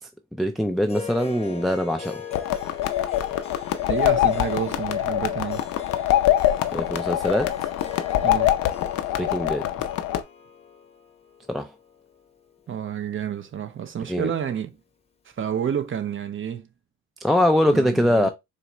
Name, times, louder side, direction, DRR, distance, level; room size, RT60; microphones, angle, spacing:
voice 1, 0.4-2.2 6.7-7.5 9.2-9.7 11.5-11.7 14.1-14.3 17.2-18.3, left 1 dB, ahead, 0.3 m, -22 dB
Harp, 0.8-13.4, left 6 dB, 20° left, 0.7 m, -42 dB
sound 1, 2.3-10.2, left 13 dB, 90° left, 0.6 m, -24 dB
voice 2, 3.9-5.7 8.2-8.6 12.7-14.7 15.4-16.7 17.7-18.3, right 8 dB, 45° right, 0.7 m, -29 dB
4.1 x 2.5 x 2.9 m
cardioid pair, 90°, 30 cm